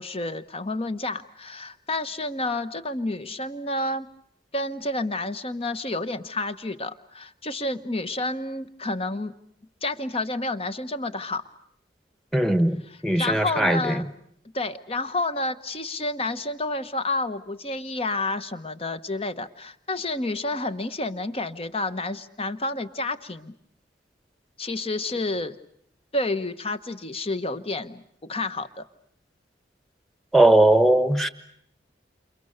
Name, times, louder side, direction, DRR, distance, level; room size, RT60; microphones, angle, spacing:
voice 1, 0.0-4.1 4.5-9.3 9.8-11.4 12.9-14.0 14.5-23.5 24.6-25.5 26.1-28.8, left 2 dB, 35° left, 1.2 m, -30 dB
voice 2, 12.3-12.8 13.0-14.0 30.3-31.3, right 1 dB, ahead, 1.3 m, -19 dB
29.0 x 28.5 x 6.7 m
head